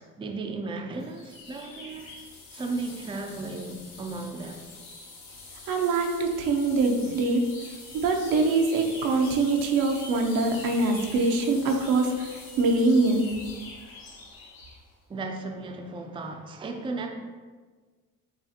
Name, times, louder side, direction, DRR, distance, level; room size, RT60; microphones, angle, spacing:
voice 1, 0.0-2.1 2.5-4.7 15.1-17.1, right 3 dB, 15° right, 3 dB, 0.4 m, -35 dB
sound 1, 1.0-14.9, left 3 dB, 80° left, 1.3 m, -45 dB
voice 2, 5.7-7.4 8.0-13.3, right 3 dB, 85° right, 2 dB, 0.7 m, -24 dB
6.9 x 2.4 x 2.8 m, 1.4 s
cardioid pair, 100°, 34 cm